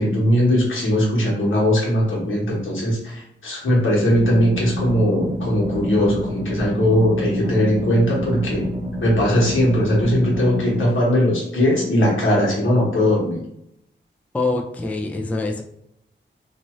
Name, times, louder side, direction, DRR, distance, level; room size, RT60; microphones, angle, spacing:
voice 1, 0.0-8.7 9.0-13.4, equal, 80° left, -4 dB, 1.2 m, -19 dB
sound 1, 4.1-10.9, equal, 40° right, 0.7 m, -28 dB
voice 2, 14.3-15.6, left 3 dB, 5° left, 2 dB, 0.3 m, -24 dB
2.7 x 2.3 x 3.0 m, 0.76 s
wide cardioid pair, 95°, 20 cm